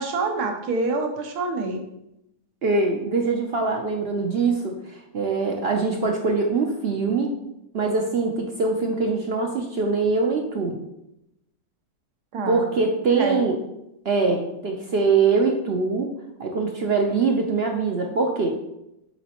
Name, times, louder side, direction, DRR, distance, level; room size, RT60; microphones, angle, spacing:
voice 1, 0.0-1.8 12.3-12.6 13.2-13.4, right 3 dB, 80° right, 4 dB, 1.4 m, -26 dB
voice 2, 2.6-7.3 7.7-10.8 12.5-13.6 14.0-16.1 16.4-18.6, right 4 dB, 60° right, 2 dB, 0.7 m, -23 dB
8.2 x 4.1 x 2.9 m, 0.86 s
omnidirectional pair, 1.7 m